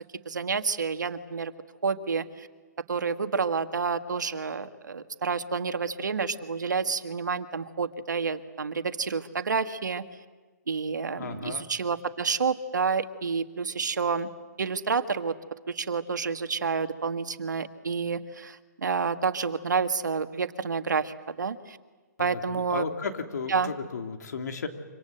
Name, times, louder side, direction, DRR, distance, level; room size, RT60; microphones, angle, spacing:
voice 1, 0.2-1.5 1.8-2.5 2.9-10.0 10.7-14.3 14.6-15.3 15.7-21.8 22.2-22.9 23.5-23.7, right 5 dB, 85° right, 9 dB, 1.7 m, -29 dB
voice 2, 11.2-11.6 22.2-24.7, left 5 dB, 70° left, 4 dB, 3.2 m, -34 dB
26.5 x 25.5 x 8.0 m, 1.3 s
hypercardioid pair, 140°, 10 cm